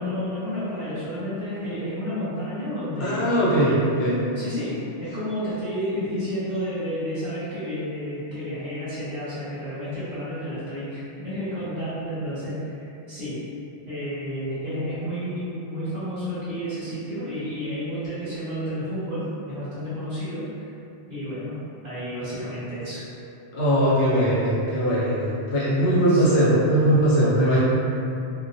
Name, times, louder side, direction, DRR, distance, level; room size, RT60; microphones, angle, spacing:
voice 1, 0.0-3.3 3.6-3.9 4.3-13.4 13.9-20.7 21.1-21.5 21.8-23.0 26.1-26.3, equal, 45° right, -13 dB, 0.9 m, -31 dB
voice 2, 3.0-4.2 23.5-27.6, right 1 dB, 65° left, -8 dB, 0.8 m, -20 dB
2.2 x 2.2 x 2.5 m, 2.7 s
omnidirectional pair, 1.2 m